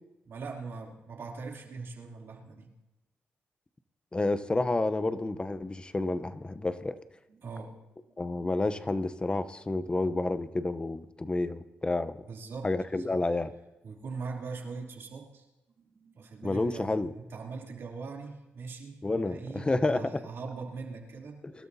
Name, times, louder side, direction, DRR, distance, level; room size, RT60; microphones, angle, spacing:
voice 1, 0.2-2.7 7.3-7.8 12.3-13.1 13.8-15.4 15.9-21.4, right 4 dB, 60° right, -1 dB, 3.0 m, -41 dB
voice 2, 4.1-6.9 8.2-12.2 12.6-13.5 16.4-17.1 19.0-20.2 21.4-21.5, left 2 dB, 20° left, 13 dB, 0.8 m, -30 dB
25.5 x 12.5 x 2.8 m, 1.0 s
cardioid pair, 80°, 5 cm